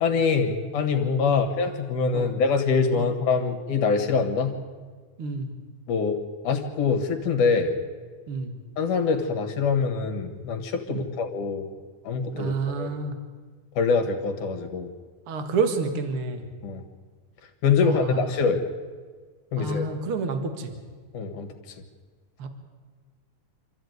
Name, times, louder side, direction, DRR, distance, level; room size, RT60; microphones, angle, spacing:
voice 1, 0.0-4.6 5.9-6.2 6.4-7.8 8.8-11.7 12.0-13.0 13.8-14.9 16.6-16.8 17.6-18.6 19.5-19.9 21.1-21.8, left 5 dB, 70° left, 5 dB, 3.1 m, -24 dB
voice 2, 5.2-5.5 8.3-8.5 10.9-11.1 12.3-13.2 15.3-16.4 17.8-18.3 19.6-20.7 22.4-22.5, right 4 dB, 45° right, 7 dB, 2.6 m, -29 dB
25.5 x 14.0 x 9.4 m, 1.5 s
omnidirectional pair, 3.7 m